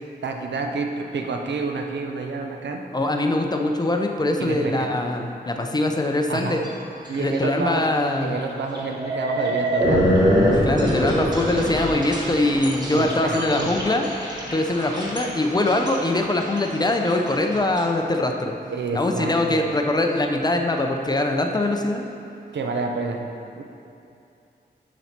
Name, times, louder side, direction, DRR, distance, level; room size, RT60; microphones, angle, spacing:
voice 1, 0.2-2.8 4.4-5.0 6.3-6.6 7.1-7.8 8.2-10.2 12.9-13.7 18.7-19.7 22.5-23.2 23.6-23.7, right 4 dB, 90° right, 3 dB, 0.7 m, -28 dB
voice 2, 2.9-6.6 7.2-8.4 10.5-14.1 14.5-18.5 18.9-22.0, left 2 dB, 25° left, 3 dB, 0.5 m, -23 dB
sound 1, 6.3-6.7 7.1-7.4 7.8-7.9 8.7-17.8, equal, 25° right, 1.2 m, -24 dB
7.5 x 4.1 x 5.8 m, 2.6 s
wide cardioid pair, 125°, 18 cm